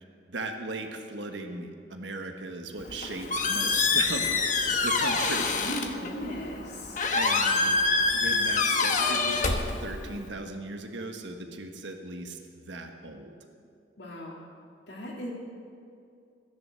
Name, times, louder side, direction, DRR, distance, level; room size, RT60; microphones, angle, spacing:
voice 1, 0.3-5.6 7.1-7.8 8.1-13.3, right 2 dB, 80° right, 4 dB, 1.4 m, -37 dB
Squeak, 2.8-10.3, left 4 dB, 45° left, 1.1 m, -26 dB
voice 2, 5.6-7.0 14.0-14.4 14.9-15.3, equal, 65° left, -2 dB, 2.9 m, -37 dB
14.0 x 10.5 x 6.9 m, 2.4 s
head